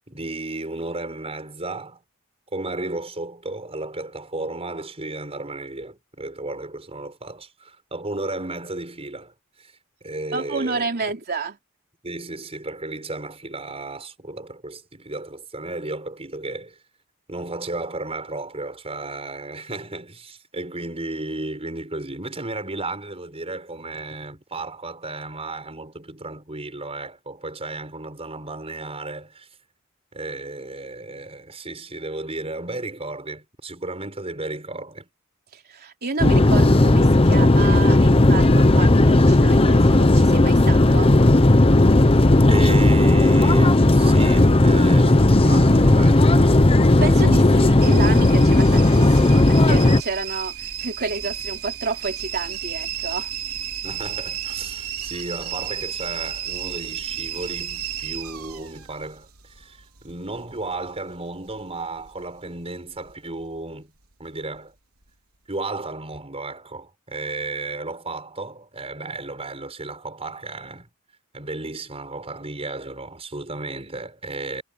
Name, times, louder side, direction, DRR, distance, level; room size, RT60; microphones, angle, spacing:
voice 1, 0.1-2.0 2.5-9.7 10.0-10.9 12.0-16.8 17.3-29.5 30.1-35.1 42.5-46.6 53.8-63.9 64.2-64.7 65.5-70.9 71.3-74.6, right 2 dB, 25° right, 6.5 m, -33 dB
voice 2, 10.3-11.6 35.5-41.1 47.0-50.5 50.8-53.3, right 3 dB, 45° right, 3.4 m, -30 dB
sound 1, 36.2-50.0, left 1 dB, 25° left, 0.9 m, -15 dB
sound 2, 47.8-62.7 62.9-63.6 64.1-64.6 65.0-65.1, right 10 dB, 80° right, 3.4 m, -33 dB
head